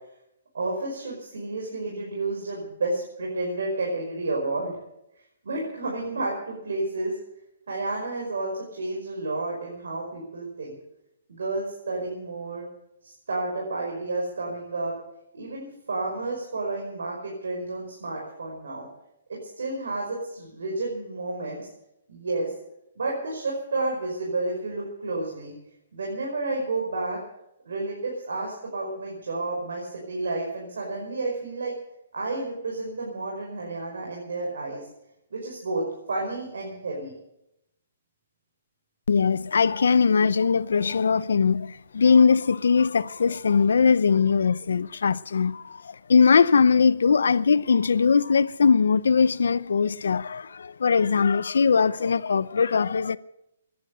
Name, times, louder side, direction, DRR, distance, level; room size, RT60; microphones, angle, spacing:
voice 1, 0.5-4.8 5.4-7.1 7.7-10.8 11.3-12.7 13.0-14.9 15.3-18.9 19.3-21.7 22.1-22.5 23.0-25.5 25.9-27.2 27.7-31.8 32.1-34.8 35.3-37.1, right 2 dB, 85° right, 5.4 m, -31 dB
voice 2, 39.1-53.2, left 5 dB, 90° left, 0.6 m, -21 dB
17.5 x 11.5 x 6.9 m
hypercardioid pair, 175°, 0 cm